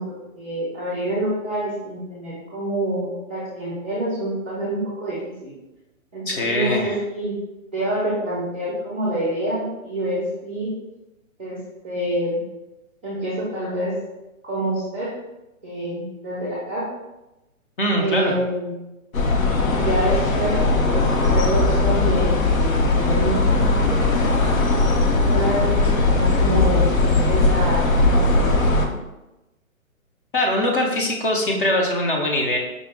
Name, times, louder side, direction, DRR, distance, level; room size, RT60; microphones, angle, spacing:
voice 1, 0.0-5.5 6.1-7.4 7.7-10.7 11.4-11.6 11.8-12.4 13.0-13.9 14.4-15.1 15.6-16.9 18.0-18.8 19.7-24.2 25.3-28.6, right 1 dB, 10° right, -7 dB, 0.4 m, -27 dB
voice 2, 6.3-7.0 17.8-18.4 30.3-32.6, left 1 dB, 40° left, 0 dB, 0.6 m, -22 dB
sound 1, 19.1-28.9, left 2 dB, 75° left, 0.8 m, -19 dB
5.0 x 2.2 x 3.6 m, 0.98 s
hypercardioid pair, 160°, 42 cm